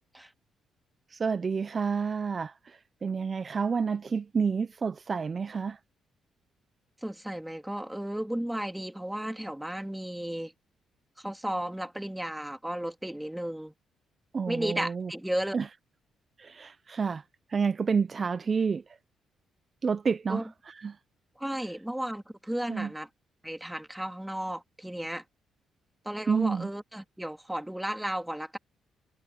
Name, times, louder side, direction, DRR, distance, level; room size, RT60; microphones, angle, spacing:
voice 1, 1.1-5.8 14.3-15.1 15.5-15.7 16.4-17.2 17.5-18.8 19.8-21.0 22.7-22.9 26.3-26.7, right 5 dB, 40° right, 0.8 m, -29 dB
voice 2, 7.0-10.5 11.2-13.7 14.5-15.5 20.3-20.5 21.4-23.1 23.4-25.2 26.0-28.6, right 1 dB, 5° right, 2.7 m, -34 dB
cardioid pair, 90°, 0 cm